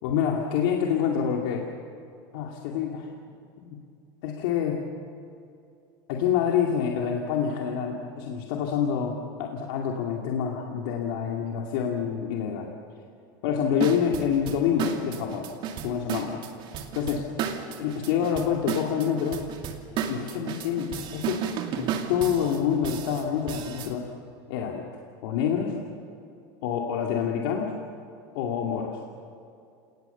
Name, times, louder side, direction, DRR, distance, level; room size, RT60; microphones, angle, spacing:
voice 1, 0.0-1.6 2.3-3.1 3.6-3.8 4.2-4.8 6.1-12.7 13.4-15.5 15.8-16.4 16.9-17.2 17.7-19.4 20.1-21.4 21.8-24.1 24.5-24.9 25.2-25.7 26.6-27.7 28.3-29.0, left 8 dB, 75° left, 0 dB, 2.4 m, -27 dB
sound 1, 13.8-23.9, right 8 dB, 50° right, 2.7 m, -33 dB
28.0 x 19.0 x 7.0 m, 2.5 s
supercardioid pair, 125°, 11 cm